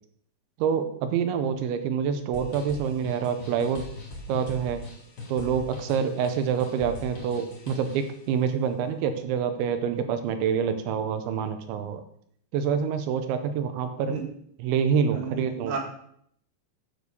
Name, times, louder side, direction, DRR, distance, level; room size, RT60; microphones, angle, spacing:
voice 1, 0.6-3.9 4.3-4.8 5.3-12.0 12.5-14.2 14.6-15.8, right 7 dB, 85° right, 8 dB, 3.0 m, -27 dB
sound 1, 2.3-8.2, left 2 dB, 45° left, 1.3 m, -40 dB
voice 2, 15.1-15.8, right 5 dB, 60° right, 1 dB, 2.7 m, -33 dB
9.6 x 4.6 x 6.8 m, 0.67 s
omnidirectional pair, 5.4 m